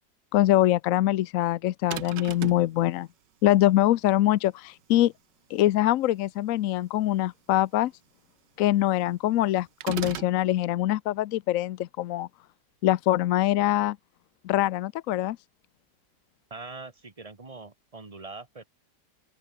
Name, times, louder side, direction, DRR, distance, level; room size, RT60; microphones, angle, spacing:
voice 1, 0.3-3.1 3.4-5.1 5.5-7.9 8.6-12.3 12.8-14.0 14.4-15.4, left 14 dB, 70° left, 0.8 m, -23 dB
sound 1, 1.9-2.7 9.8-10.4, right 12 dB, 80° right, 1.6 m, -35 dB
voice 2, 16.5-18.6, right 3 dB, 20° right, 1.6 m, -42 dB
open air
omnidirectional pair, 1.9 m